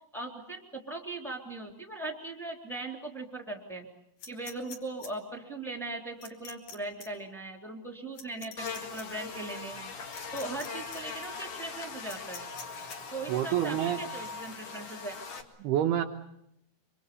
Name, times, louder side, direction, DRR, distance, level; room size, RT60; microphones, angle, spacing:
voice 1, 0.1-3.9 4.3-9.9 10.3-12.4 13.1-15.2, right 2 dB, ahead, 3 dB, 2.3 m, -39 dB
sound 1, 4.2-5.1 6.2-6.7 7.0-7.1 8.1-9.0 10.1-10.7 10.9-11.0 12.1-13.0, left 5 dB, 45° left, 3.2 m, -45 dB
Buzz, 8.6-15.4, left 5 dB, 75° left, 1.3 m, -41 dB
voice 2, 13.3-14.0 15.6-16.0, right 11 dB, 75° right, 2 dB, 2.4 m, -27 dB
25.0 x 25.0 x 7.0 m, 0.78 s
omnidirectional pair, 5.9 m